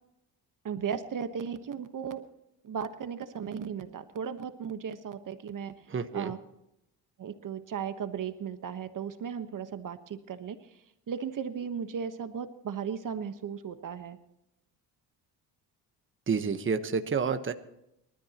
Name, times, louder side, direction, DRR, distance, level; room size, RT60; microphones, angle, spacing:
voice 1, 0.6-2.2 2.6-5.7 6.1-6.4 7.2-10.8 11.1-14.2, right 7 dB, 50° right, 9 dB, 1.3 m, -36 dB
voice 2, 5.9-6.3 16.3-17.5, right 5 dB, 30° right, 8 dB, 1.2 m, -29 dB
24.5 x 13.5 x 3.0 m, 0.83 s
cardioid pair, 85°, 40 cm